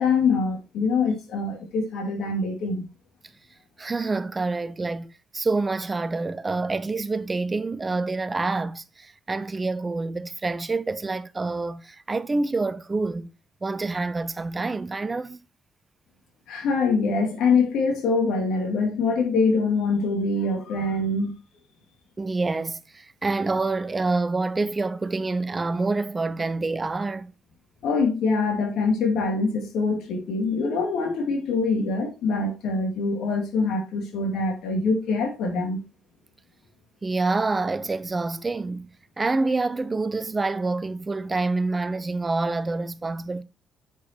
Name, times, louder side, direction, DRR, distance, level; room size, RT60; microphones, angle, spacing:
voice 1, 0.0-2.9 16.5-21.3 27.8-35.8, left 4 dB, 80° left, 2.8 m, -24 dB
voice 2, 3.8-13.3 13.6-15.4 22.2-27.3 37.0-38.9 39.2-43.4, right 3 dB, 25° right, 0.8 m, -27 dB
8.8 x 5.2 x 4.4 m
cardioid pair, 90°, 0 cm